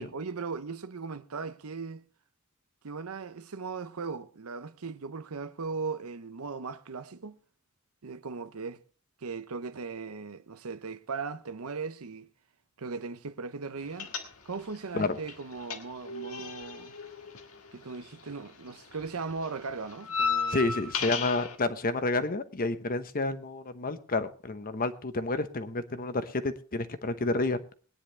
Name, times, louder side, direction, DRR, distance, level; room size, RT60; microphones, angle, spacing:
voice 1, 0.0-2.0 2.8-7.4 8.0-8.8 9.2-12.3 12.8-14.1 14.4-17.0 17.7-20.6, right 4 dB, 90° right, 0.8 m, -38 dB
sound 1, 14.0-14.8 15.0-18.4 18.7-21.6, left 5 dB, 90° left, 1.7 m, -34 dB
voice 2, 20.5-27.7, left 2 dB, 40° left, 1.0 m, -30 dB
20.5 x 9.9 x 3.3 m
head